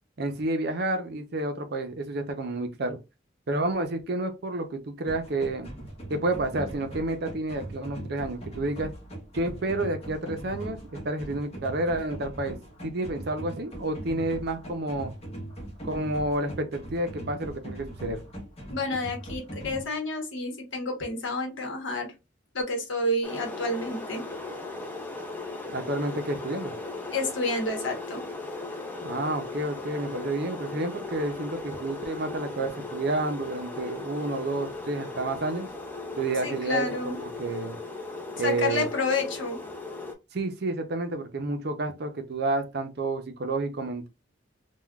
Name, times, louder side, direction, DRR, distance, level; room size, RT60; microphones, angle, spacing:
voice 1, 0.2-3.0 3.5-5.7 6.1-8.9 9.3-12.6 12.8-15.1 15.8-18.2 25.7-26.7 29.0-35.7 36.2-37.8 38.4-38.9 40.3-44.1, right 2 dB, 50° right, 0.5 m, -30 dB
sound 1, 5.1-19.8, right 1 dB, 30° left, 0.8 m, -40 dB
voice 2, 18.7-22.1 22.5-24.2 27.1-28.2 36.4-37.2 38.4-39.6, left 2 dB, 65° left, 0.9 m, -29 dB
sound 2, 23.2-40.1, left 3 dB, 10° left, 0.4 m, -37 dB
3.6 x 2.2 x 2.2 m
head